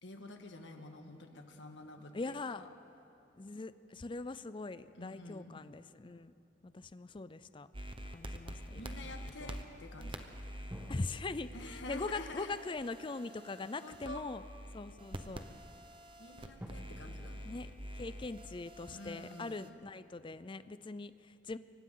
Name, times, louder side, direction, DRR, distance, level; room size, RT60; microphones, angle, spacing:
voice 1, 0.0-2.7 5.0-5.7 8.8-10.3 11.5-12.5 13.8-14.2 16.2-17.5 18.9-19.8, left 2 dB, 80° left, 4 dB, 1.7 m, -48 dB
voice 2, 2.1-2.6 3.4-6.3 6.6-7.7 8.1-9.1 9.4-9.5 10.9-14.4 14.7-15.4 17.4-21.6, left 3 dB, 30° left, 14 dB, 0.5 m, -42 dB
sound 1, 5.2-7.8 10.7-14.0 14.7-14.8 16.6-16.7, equal, 10° right, 1.9 m, -55 dB
sound 2, 7.7-19.7, equal, 30° right, 1.0 m, -47 dB
28.5 x 24.0 x 3.9 m, 2.9 s
head